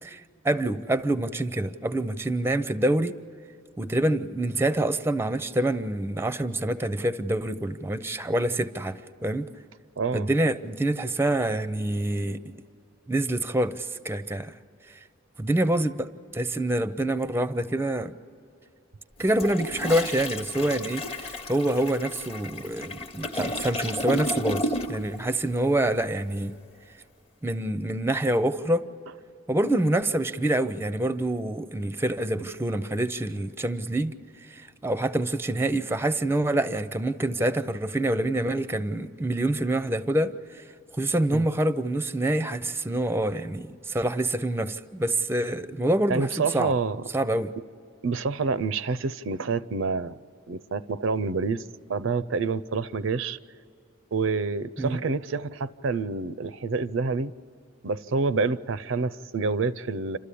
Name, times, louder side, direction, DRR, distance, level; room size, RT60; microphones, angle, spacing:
voice 1, 0.0-3.1 3.8-9.5 10.1-12.5 13.1-14.5 15.4-18.2 19.2-26.5 27.4-28.9 29.5-34.1 34.5-40.6 40.9-46.8 47.1-47.5 54.8-55.0, right 1 dB, 10° right, 0.5 m, -26 dB
voice 2, 10.0-10.3 41.3-41.4 46.1-47.0 48.0-50.2 50.5-51.6 51.9-53.4 54.1-57.3 57.8-60.2, right 4 dB, 75° right, 0.5 m, -27 dB
Toilet flush, 19.2-25.2 25.4-25.7, left 1 dB, 30° left, 0.9 m, -32 dB
28.5 x 13.0 x 8.4 m
head